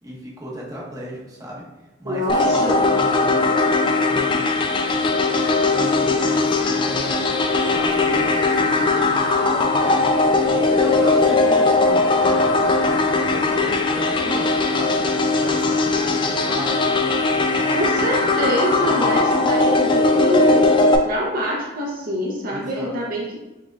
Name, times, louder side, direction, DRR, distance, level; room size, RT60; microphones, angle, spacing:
voice 1, 0.0-1.7 2.0-2.6 2.9-3.4 4.0-4.5 5.7-7.3 7.7-15.0 15.4-17.8 18.7-19.2 22.5-22.9, equal, 20° right, -4 dB, 0.8 m, -35 dB
voice 2, 2.0-2.9 17.8-20.6 21.0-23.4, equal, 50° right, -3 dB, 0.6 m, -25 dB
sound 1, 2.3-21.0, left 3 dB, 25° left, 0.3 m, -19 dB
Ocean, 4.1-18.2, equal, 55° left, 1.0 m, -42 dB
4.6 x 3.4 x 2.3 m, 1.0 s
head